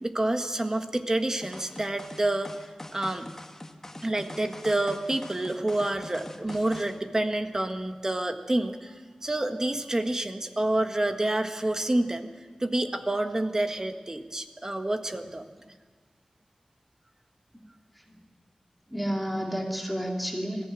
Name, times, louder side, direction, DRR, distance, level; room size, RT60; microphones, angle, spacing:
voice 1, 0.0-2.5 2.9-3.3 4.0-8.9 9.2-12.3 12.6-15.4, right 1 dB, 30° right, 6 dB, 1.5 m, -28 dB
sound 1, 1.4-7.0, left 1 dB, 20° left, 1.5 m, -43 dB
voice 2, 18.9-20.7, equal, ahead, 0 dB, 2.5 m, -31 dB
21.0 x 15.0 x 9.1 m, 1.5 s
wide cardioid pair, 85°, 2 cm